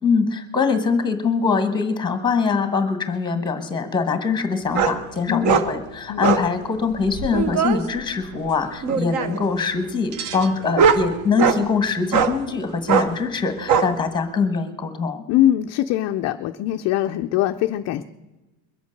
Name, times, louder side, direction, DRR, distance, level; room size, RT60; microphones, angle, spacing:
voice 1, 0.0-15.2, left 5 dB, 10° left, 8 dB, 1.2 m, -23 dB
sound 1, 4.7-5.0 5.4-5.7 6.2-6.5 7.0-7.8 8.8-9.4 10.1-11.6 12.1-12.3 12.9-13.1 13.7-13.9, right 6 dB, 45° right, 1.0 m, -20 dB
voice 2, 15.3-18.0, left 12 dB, 40° left, 7 dB, 0.4 m, -22 dB
22.0 x 8.2 x 6.5 m, 1.1 s
cardioid pair, 175°, 43 cm